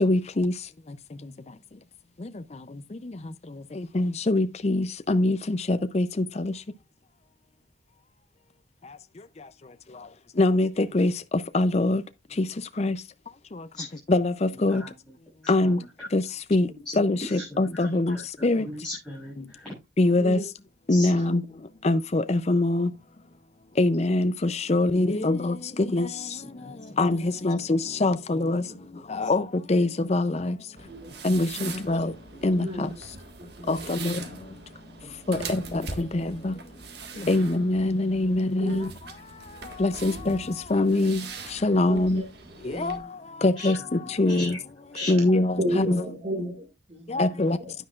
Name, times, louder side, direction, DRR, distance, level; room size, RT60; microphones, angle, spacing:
voice 1, 0.0-0.5 4.0-6.0 10.4-10.7 10.9-11.1 11.5-12.0 12.8-12.9 14.1-14.3 14.6-14.8 15.5-15.8 16.1-16.2 16.5-16.7 17.0-18.2 18.4-18.6 20.0-20.4 20.9-21.4 21.8-22.9 23.8-24.3 24.7-25.5 25.9-26.1 27.0-27.2 27.4-28.6 29.2-29.4 29.7-30.3 31.2-32.1 32.4-32.7 33.7-34.1 35.3-35.4 36.4-36.5 37.3-38.9 39.8-40.4 40.7-41.2 41.6-42.2 42.8-42.9 43.4-43.8 44.2-44.5 45.1-45.9 47.1-47.6, left 2 dB, 35° left, 0.5 m, -22 dB
voice 2, 17.1-19.7 20.9-21.1 26.6-27.0 29.2-29.3 30.3-30.5 35.0-35.1 43.5-44.6 44.9-45.1, left 2 dB, 5° left, 6.4 m, -39 dB
sound 1, 30.8-43.0, right 4 dB, 55° right, 1.6 m, -42 dB
voice 3, 32.5-32.9 33.4-34.2 35.3-36.3 37.1-37.5 38.2-38.9 39.9-40.3 41.9-42.3 42.6-43.1 45.0-45.1 45.6-47.7, equal, 30° right, 2.0 m, -35 dB
10.0 x 9.8 x 2.4 m
head